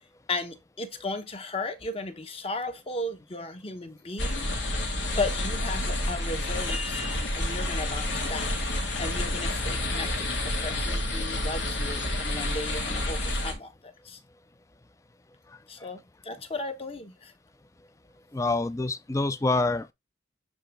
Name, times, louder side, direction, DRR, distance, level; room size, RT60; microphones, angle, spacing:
voice 1, 0.3-4.5 5.2-14.2 15.7-17.3, left 2 dB, 30° left, 1.0 m, -35 dB
sound 1, 4.2-13.5, left 1 dB, 90° left, 1.9 m, -29 dB
voice 2, 15.5-15.9 18.3-19.9, left 2 dB, 15° left, 0.4 m, -27 dB
8.0 x 3.9 x 3.4 m
head